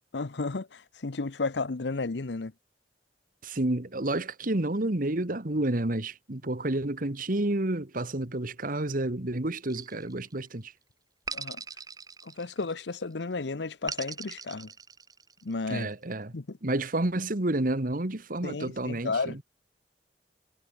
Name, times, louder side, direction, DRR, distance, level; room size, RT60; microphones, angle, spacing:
voice 1, 0.1-2.5 11.3-11.6 12.2-14.7 15.4-15.9 16.3-16.6 18.4-19.4, left 3 dB, 80° left, 0.8 m, -33 dB
voice 2, 3.4-10.7 15.7-16.3 16.6-19.4, right 1 dB, 50° right, 1.7 m, -30 dB
sound 1, 9.7-10.5 11.3-12.9 13.9-15.5, right 5 dB, 20° right, 1.0 m, -40 dB
head